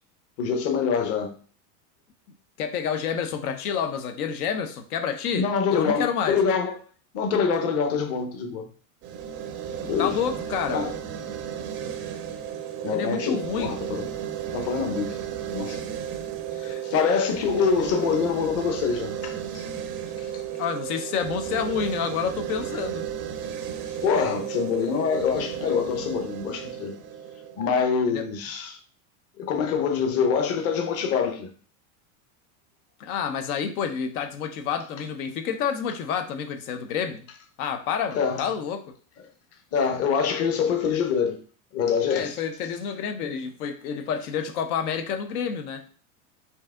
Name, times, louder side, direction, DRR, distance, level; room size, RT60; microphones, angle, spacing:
voice 1, 0.4-1.3 5.3-6.8 7.1-8.7 9.8-10.1 10.7-10.9 12.8-14.1 14.5-15.2 15.5-15.8 16.6-19.6 20.2-20.3 24.0-27.0 27.6-28.8 29.4-31.5 38.1-38.4 39.7-41.4 41.7-42.4, left 6 dB, 35° left, 0.8 m, -25 dB
voice 2, 2.6-6.4 10.0-10.8 12.9-13.8 20.6-23.1 28.1-28.2 33.0-37.3 37.6-38.9 42.1-45.9, left 7 dB, 80° left, 0.7 m, -29 dB
sound 1, 9.0-28.1, right 9 dB, 30° right, 0.4 m, -34 dB
4.6 x 2.7 x 3.6 m
supercardioid pair, 135°, 43 cm